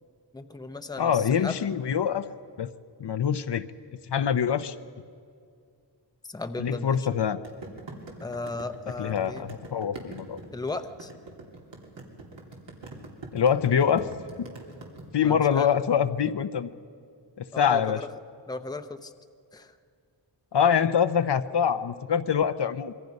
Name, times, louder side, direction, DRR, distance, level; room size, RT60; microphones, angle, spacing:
voice 1, 0.3-1.6 6.3-7.1 8.2-9.5 10.5-11.1 15.2-15.8 17.5-18.1 18.5-19.1 19.5-19.8, left 3 dB, 10° left, 8 dB, 0.7 m, -36 dB
voice 2, 1.0-2.3 2.6-2.7 3.0-3.6 4.1-4.8 6.6-7.4 9.0-10.4 13.3-14.1 14.4-14.5 15.1-16.7 17.4-18.0 20.5-22.9, left 8 dB, 65° left, 10 dB, 0.8 m, -24 dB
sound 1, 7.4-15.0, right 3 dB, 75° right, 3.3 m, -43 dB
26.0 x 23.0 x 5.3 m, 2.3 s
wide cardioid pair, 110°, 44 cm